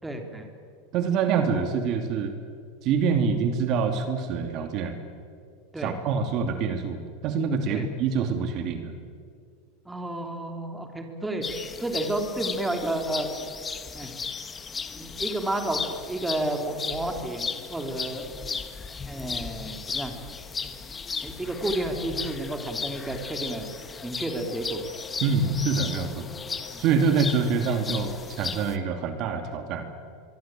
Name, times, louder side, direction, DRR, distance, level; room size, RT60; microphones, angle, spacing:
voice 1, 0.0-0.5 5.7-5.9 7.7-7.9 9.8-11.5 11.8-13.3 13.9-14.1 14.9-18.3 19.1-20.1 20.6-20.7 21.2-23.6 24.0-24.8 26.7-26.8, right 1 dB, 5° right, 4 dB, 3.3 m, -31 dB
voice 2, 0.9-2.3 2.8-5.0 5.8-8.9 25.2-26.3 26.8-29.9, right 5 dB, 45° right, 6 dB, 2.8 m, -26 dB
sound 1, 11.4-28.8, left 5 dB, 20° left, 1.5 m, -36 dB
24.5 x 23.5 x 9.1 m, 2.2 s
supercardioid pair, 135°, 0 cm